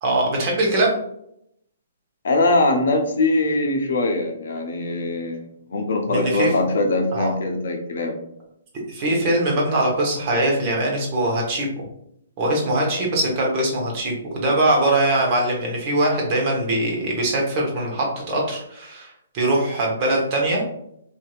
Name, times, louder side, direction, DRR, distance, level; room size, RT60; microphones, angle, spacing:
voice 1, 0.0-0.9 6.1-6.5 7.1-7.3 8.9-11.9 12.4-20.6, right 1 dB, 35° right, -2 dB, 0.9 m, -22 dB
voice 2, 2.2-8.2, left 2 dB, 65° left, 3 dB, 0.6 m, -22 dB
2.8 x 2.5 x 2.3 m, 0.76 s
figure-of-eight pair, 125°, 0 cm